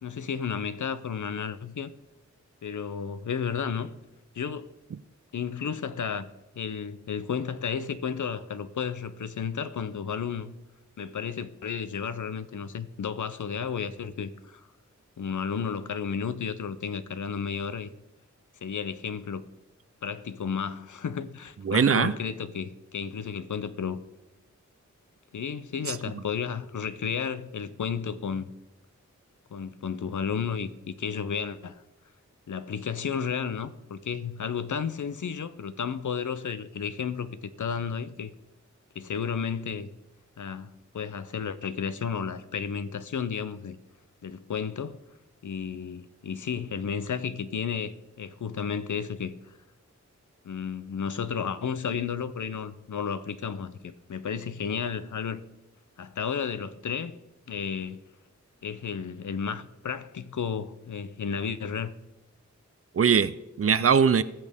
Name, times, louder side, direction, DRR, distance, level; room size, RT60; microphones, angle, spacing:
voice 1, 0.0-1.9 2.6-3.9 4.3-4.7 5.3-6.3 6.6-10.5 11.0-14.6 15.2-17.9 18.6-19.5 20.0-24.0 25.3-28.5 29.5-31.8 32.5-38.3 38.9-39.9 40.4-43.8 44.2-45.0 45.4-49.3 50.4-55.4 56.0-57.2 57.5-58.0 58.6-62.0, left 6 dB, 80° left, 0.7 m, -32 dB
voice 2, 21.6-22.1 25.9-26.2 62.9-64.2, right 6 dB, 50° right, 0.5 m, -22 dB
19.0 x 6.4 x 3.6 m
wide cardioid pair, 60°, 30 cm